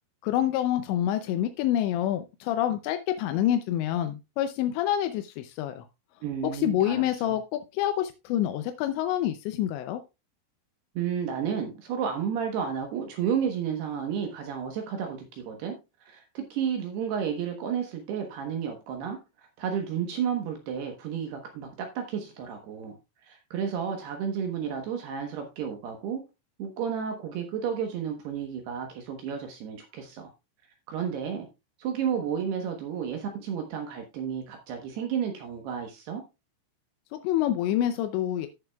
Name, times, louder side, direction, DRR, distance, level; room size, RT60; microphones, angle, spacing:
voice 1, 0.2-5.9 6.4-10.0 37.1-38.5, left 12 dB, 85° left, 9 dB, 2.6 m, -27 dB
voice 2, 6.2-7.3 11.0-15.8 16.0-19.2 19.6-22.9 23.2-26.2 26.6-30.3 30.9-31.5 31.8-36.2, right 7 dB, 70° right, 4 dB, 2.8 m, -32 dB
14.0 x 7.0 x 2.3 m, 0.26 s
omnidirectional pair, 5.7 m